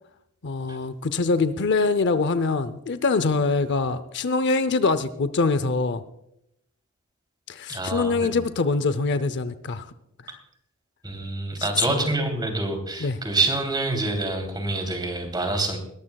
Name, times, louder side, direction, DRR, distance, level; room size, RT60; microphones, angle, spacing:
voice 1, 0.4-6.0 7.5-9.9 11.6-12.0 13.0-13.2, left 3 dB, 55° left, 12 dB, 0.6 m, -24 dB
voice 2, 7.7-8.5 11.0-15.8, right 2 dB, 20° right, 4 dB, 3.1 m, -26 dB
21.0 x 14.0 x 2.3 m, 0.76 s
head